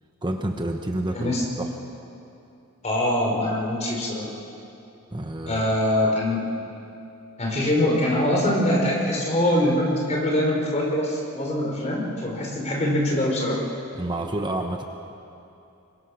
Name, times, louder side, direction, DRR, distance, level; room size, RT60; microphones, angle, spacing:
voice 1, 0.2-1.7 5.1-5.6 13.9-14.8, right 1 dB, 20° right, 4 dB, 1.0 m, -29 dB
voice 2, 2.8-4.3 5.5-6.4 7.4-13.6, left 1 dB, 30° left, -1 dB, 4.8 m, -23 dB
26.0 x 22.5 x 6.5 m, 2.8 s
head